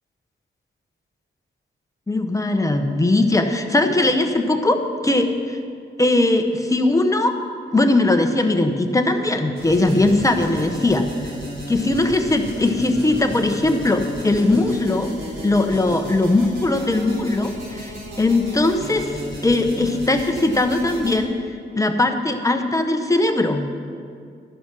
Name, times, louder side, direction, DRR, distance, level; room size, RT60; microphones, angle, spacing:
voice 1, 2.1-5.6 6.0-7.3 7.7-11.1 11.7-15.1 15.4-17.9 18.2-19.1 19.4-21.3 21.7-23.6, left 2 dB, 15° left, 5 dB, 0.8 m, -19 dB
sound 1, 9.5-21.2, equal, 70° right, 3.5 m, -34 dB
12.5 x 10.0 x 6.0 m, 2.2 s
wide cardioid pair, 145°, 20 cm